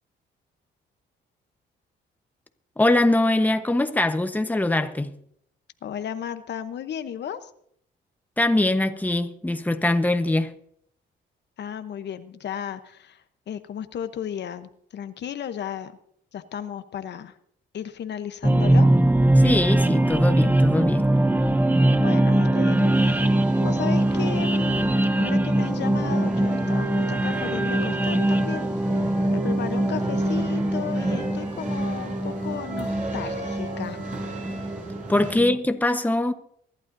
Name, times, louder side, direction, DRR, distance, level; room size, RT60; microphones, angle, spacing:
voice 1, 2.8-5.1 8.4-10.5 19.4-21.1 35.1-36.3, left 2 dB, 10° left, 1.0 m, -22 dB
voice 2, 5.8-7.5 11.6-16.0 16.3-17.4 17.7-18.9 21.9-24.9 25.2-34.0, left 9 dB, 60° left, 0.9 m, -34 dB
sound 1, 18.4-35.6, right 1 dB, 10° right, 0.7 m, -22 dB
sound 2, 22.7-35.3, right 2 dB, 40° right, 6.0 m, -36 dB
23.5 x 12.0 x 2.7 m
cardioid pair, 90°, 20 cm